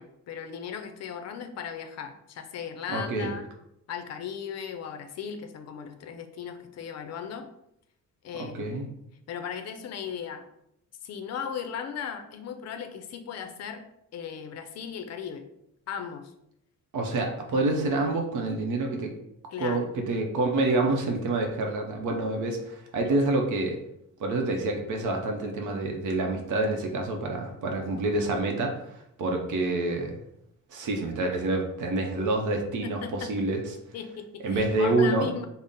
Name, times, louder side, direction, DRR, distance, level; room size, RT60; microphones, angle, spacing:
voice 1, 0.0-3.4 3.9-7.5 8.2-8.8 9.3-10.4 11.0-13.8 14.1-15.4 15.9-16.3 19.5-19.9 32.8-33.3 33.9-35.5, left 7 dB, 55° left, 7 dB, 0.5 m, -37 dB
voice 2, 2.9-3.3 8.4-8.9 16.9-19.1 19.6-23.8 24.2-30.2 30.7-33.6 34.4-35.3, right 2 dB, 65° right, 2 dB, 0.7 m, -27 dB
3.6 x 2.0 x 3.9 m, 0.78 s
cardioid pair, 160°, 32 cm